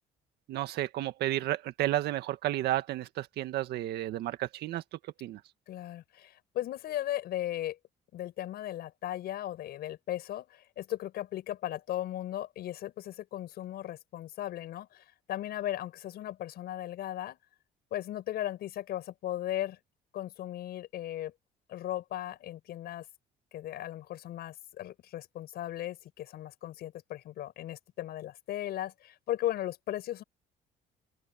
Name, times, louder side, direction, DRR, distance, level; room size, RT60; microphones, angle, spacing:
voice 1, 0.5-5.4, right 14 dB, 75° right, 1.8 m, -32 dB
voice 2, 5.7-7.8 8.1-17.4 17.9-19.8 20.1-21.3 21.7-23.1 23.5-30.2, left 13 dB, 70° left, 5.6 m, -37 dB
open air
cardioid pair, 110°, 17 cm